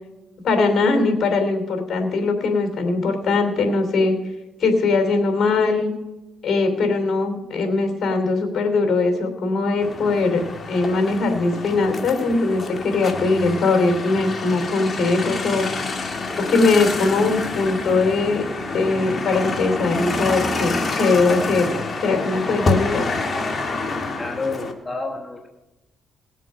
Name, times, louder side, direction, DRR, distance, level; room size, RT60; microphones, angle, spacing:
voice 1, 0.4-4.2 4.6-5.9 6.4-10.4 10.7-15.7 16.4-18.5 18.7-23.1, left 3 dB, 55° left, 5 dB, 2.9 m, -20 dB
sound 1, 9.8-24.7, left 3 dB, 35° left, 1.9 m, -27 dB
voice 2, 24.2-25.5, left 3 dB, 20° left, 2 dB, 1.1 m, -29 dB
19.0 x 7.5 x 5.5 m, 1.0 s
cardioid pair, 90°, 0 cm